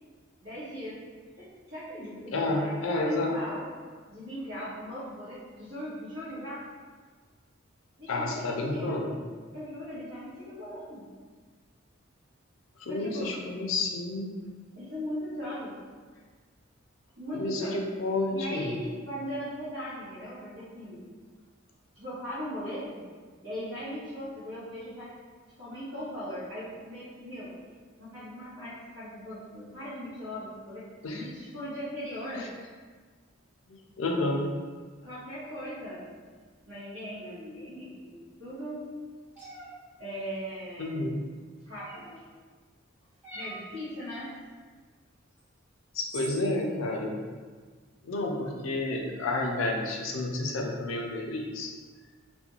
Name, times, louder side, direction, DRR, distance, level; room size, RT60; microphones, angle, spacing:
voice 1, 0.4-1.0 1.4-3.7 4.1-6.6 8.0-9.1 9.5-11.1 12.9-13.3 14.8-15.7 17.2-17.8 18.3-21.0 21.9-23.0 23.4-25.1 25.6-27.5 28.0-32.4 35.0-36.0 36.7-38.8 40.0-41.0 41.6-42.2 43.3-44.3, equal, 70° right, -13 dB, 0.9 m, -39 dB
voice 2, 2.3-3.3 8.1-9.1 12.8-14.3 17.3-18.8 31.0-31.3 32.3-32.5 33.7-34.4 40.8-41.2 45.9-47.2 48.0-51.7, left 2 dB, 70° left, 1 dB, 0.4 m, -30 dB
sound 1, 39.3-39.7 41.7-42.2 43.2-43.7 45.4-45.5 46.1-46.5, right 1 dB, 5° right, 0.8 m, -42 dB
2.4 x 2.1 x 2.9 m, 1.5 s
head